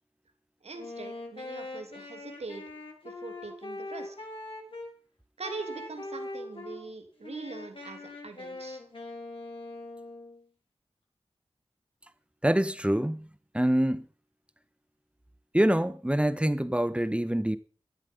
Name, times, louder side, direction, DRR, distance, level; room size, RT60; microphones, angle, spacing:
voice 1, 0.6-2.6 3.0-4.3 5.4-8.8, right 3 dB, 75° right, 2.9 m, -42 dB
Wind instrument woodwind instrument, 0.7-4.9 5.4-6.8 7.2-10.4, left 2 dB, 55° left, 5.4 m, -42 dB
voice 2, 12.4-13.3 13.5-14.1 15.5-17.6, right 1 dB, 10° right, 1.3 m, -25 dB
17.0 x 10.5 x 5.4 m
cardioid pair, 40°, 11 cm